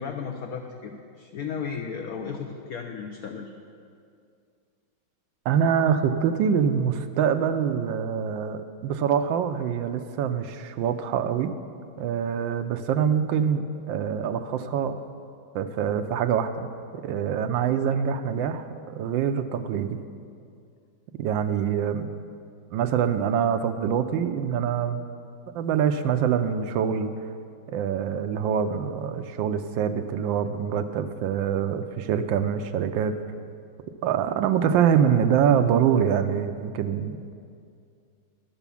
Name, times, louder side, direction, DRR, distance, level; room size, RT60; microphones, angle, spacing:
voice 1, 0.0-3.5, left 6 dB, 65° left, 3 dB, 0.9 m, -34 dB
voice 2, 5.5-11.5 12.0-14.9 15.5-16.7 16.9-18.7 18.9-19.9 21.1-22.1 22.7-25.1 25.5-27.1 27.7-33.1 34.0-37.3, right 8 dB, 80° right, 9 dB, 1.3 m, -25 dB
11.0 x 7.1 x 6.9 m, 2.3 s
omnidirectional pair, 2.1 m